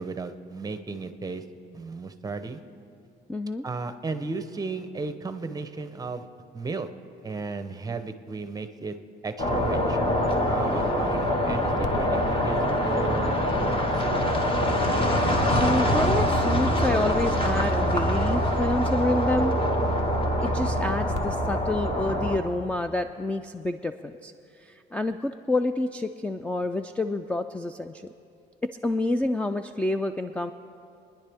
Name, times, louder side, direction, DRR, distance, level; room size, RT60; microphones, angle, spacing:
voice 1, 0.0-1.4 1.7-2.6 3.6-6.3 6.5-6.9 7.2-9.0 9.2-10.0 10.5-14.2, right 4 dB, 20° right, 10 dB, 0.8 m, -34 dB
voice 2, 3.3-3.6 15.6-19.6 20.4-24.3 24.6-28.1 28.6-30.5, left 2 dB, 5° left, 9 dB, 0.3 m, -28 dB
sound 1, 9.4-22.4, equal, 30° left, 1.5 m, -24 dB
sound 2, 11.2-14.3 15.6-22.5, left 5 dB, 70° left, 0.8 m, -39 dB
25.5 x 10.5 x 3.5 m, 2.6 s
cardioid pair, 110°, 18 cm